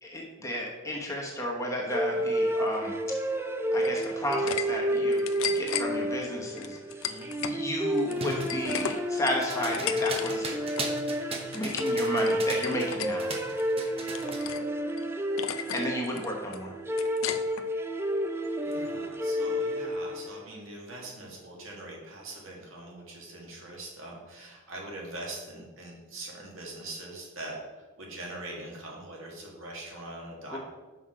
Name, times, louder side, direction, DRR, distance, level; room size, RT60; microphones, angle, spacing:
voice 1, 0.0-2.9 3.7-5.2 5.5-6.8 7.4-10.6 11.5-13.3 15.7-16.7 30.5-30.6, left 1 dB, 15° left, -2 dB, 1.1 m, -32 dB
sound 1, 1.9-20.4, equal, 10° right, 0.3 m, -30 dB
sound 2, 3.8-4.6 5.0-5.9 6.6-7.6 7.9-10.3 10.6-10.9 11.3-12.0 12.2-13.1 13.6-14.7 15.0-15.1 15.4-15.9 16.2-17.6, left 9 dB, 70° left, 0.5 m, -35 dB
sound 3, 8.1-12.9 13.2-14.5, right 2 dB, 25° right, 0.8 m, -37 dB
voice 2, 18.6-27.6 28.0-30.6, right 2 dB, 65° right, -2 dB, 1.9 m, -42 dB
6.1 x 5.8 x 4.9 m, 1.2 s
head